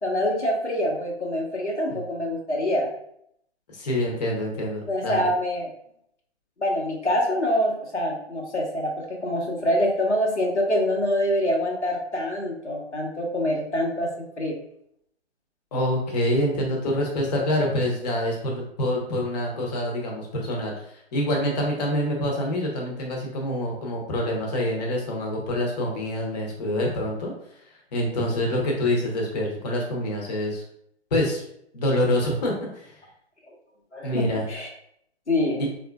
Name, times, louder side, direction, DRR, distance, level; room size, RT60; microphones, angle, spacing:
voice 1, 0.0-2.9 4.9-5.7 6.6-14.6 33.9-34.7 35.3-35.6, left 1 dB, 85° left, -1 dB, 1.2 m, -25 dB
voice 2, 3.7-5.3 15.7-27.3 27.9-30.6 31.1-31.4 31.7-33.0 34.0-34.5, left 1 dB, 40° left, -1 dB, 1.0 m, -26 dB
4.1 x 2.6 x 2.3 m, 0.72 s
figure-of-eight pair, 130°, 33 cm